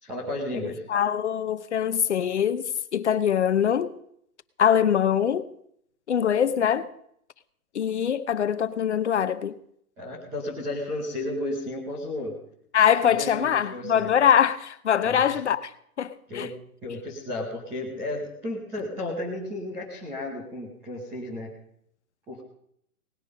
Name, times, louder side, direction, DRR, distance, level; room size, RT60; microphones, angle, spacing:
voice 1, 0.0-0.8 10.0-12.4 13.0-14.1 15.0-15.4 16.3-16.5 16.8-21.5 22.3-22.4, left 1 dB, 5° right, 0.9 m, -33 dB
voice 2, 0.9-2.7 2.9-3.9 4.6-5.5 6.1-6.9 7.7-9.5 12.7-15.7 16.0-16.5, left 8 dB, 50° left, 0.8 m, -23 dB
19.0 x 10.5 x 5.3 m
hypercardioid pair, 175°, 45 cm